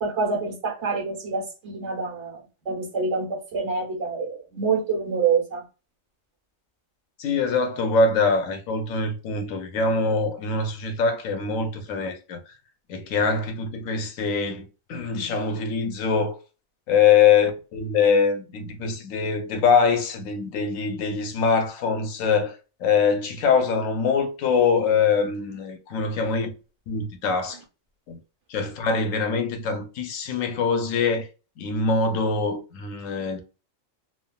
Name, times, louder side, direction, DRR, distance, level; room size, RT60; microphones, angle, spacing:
voice 1, 0.0-2.4 2.6-5.6, right 5 dB, 65° right, 1.2 m, -26 dB
voice 2, 7.2-12.4 12.9-16.4 16.9-26.5 26.9-27.6 28.1-28.2 28.5-31.3 31.6-33.4, left 5 dB, 85° left, 1.0 m, -23 dB
3.3 x 2.2 x 2.2 m
omnidirectional pair, 1.3 m